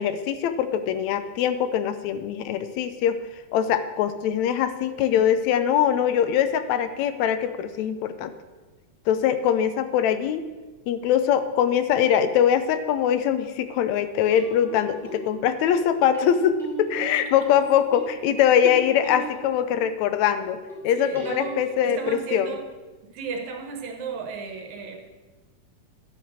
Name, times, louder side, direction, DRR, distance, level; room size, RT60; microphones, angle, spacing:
voice 1, 0.0-3.2 3.5-8.3 9.1-10.4 10.9-20.6 20.8-22.5, left 9 dB, 75° left, 11 dB, 1.8 m, -22 dB
sound 1, 12.7-12.9 14.3-20.2 20.7-22.1 24.5-24.6, right 3 dB, ahead, 2.8 m, -41 dB
voice 2, 20.9-21.6 21.8-22.7 23.1-25.1, right 5 dB, 65° right, 4 dB, 2.5 m, -34 dB
11.0 x 7.9 x 6.4 m, 1.2 s
omnidirectional pair, 3.6 m